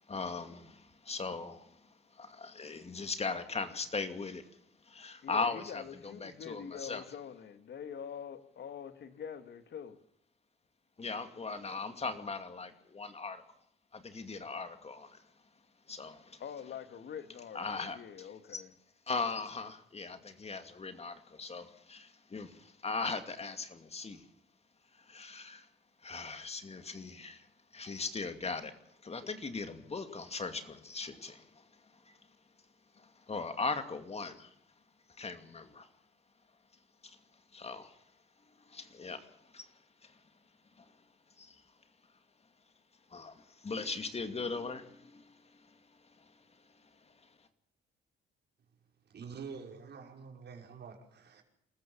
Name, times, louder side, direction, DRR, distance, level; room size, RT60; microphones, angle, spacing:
voice 1, 0.1-1.8 2.1-4.5 4.9-7.0 11.0-13.4 13.9-15.2 15.9-16.4 17.5-18.6 19.1-24.3 25.0-25.7 26.0-27.5 27.7-28.7 29.0-31.6 32.1-32.2 33.0-34.5 35.2-35.9 37.0-37.2 37.5-38.0 38.7-39.7 40.0-40.2 40.8-40.9 41.4-41.6 43.1-45.7 46.2-46.3, left 4 dB, 30° left, 2.5 m, -39 dB
voice 2, 5.2-10.0 16.4-18.7, left 8 dB, 60° left, 1.9 m, -45 dB
voice 3, 49.1-51.4, right 5 dB, 60° right, 5.5 m, -47 dB
26.0 x 14.5 x 7.3 m
cardioid pair, 90°, 20 cm